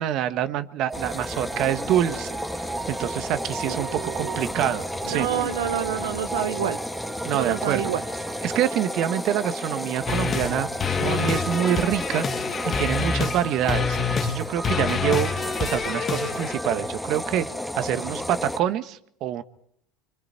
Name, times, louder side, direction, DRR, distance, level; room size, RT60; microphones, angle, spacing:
voice 1, 0.0-5.3 7.2-7.8 8.4-10.7 11.0-12.2 12.6-15.3 15.6-17.4 17.7-19.4, right 11 dB, 55° right, 10 dB, 1.5 m, -26 dB
sound 1, 0.9-18.6, equal, ahead, 2.2 m, -32 dB
sound 2, 0.9-18.0, right 2 dB, 20° right, 1.6 m, -39 dB
voice 2, 3.6-4.5 5.1-6.8 7.3-8.0, right 10 dB, 85° right, 8 dB, 0.9 m, -28 dB
sound 3, 10.1-10.5 10.8-13.4 13.7-14.4 14.6-16.5, left 5 dB, 35° left, 1.9 m, -27 dB
27.0 x 24.0 x 4.6 m, 0.72 s
hypercardioid pair, 90°, 0 cm